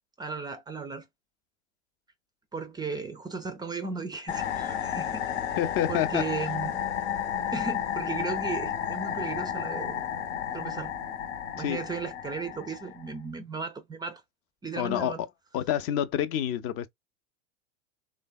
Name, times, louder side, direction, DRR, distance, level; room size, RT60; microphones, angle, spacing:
voice 1, 0.2-1.1 2.5-5.3 5.9-6.8 7.5-10.0 10.5-10.9 11.5-14.2 14.6-15.2, right 4 dB, 10° right, 0.3 m, -35 dB
sound 1, 4.3-13.1, left 9 dB, 80° left, 0.8 m, -32 dB
voice 2, 5.6-6.5 11.6-11.8 14.8-15.1 15.5-16.9, left 10 dB, 40° left, 0.5 m, -28 dB
3.3 x 2.0 x 2.2 m
hypercardioid pair, 100°, 36 cm